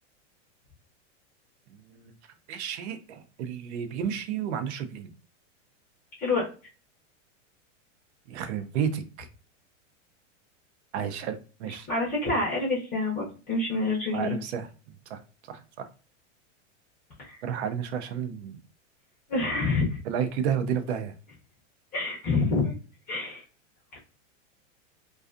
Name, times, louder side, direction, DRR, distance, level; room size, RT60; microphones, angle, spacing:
voice 1, 2.5-5.1 8.3-9.3 10.9-11.9 14.1-14.7 15.1-15.2 15.5-15.9 17.4-18.6 20.0-21.1, right 8 dB, 60° right, 9 dB, 0.5 m, -31 dB
voice 2, 11.9-14.4 17.2-17.4 19.3-20.0 21.9-22.7 23.1-23.4, left 3 dB, 25° left, -4 dB, 0.6 m, -27 dB
2.4 x 2.3 x 2.4 m, 0.34 s
supercardioid pair, 150°, 38 cm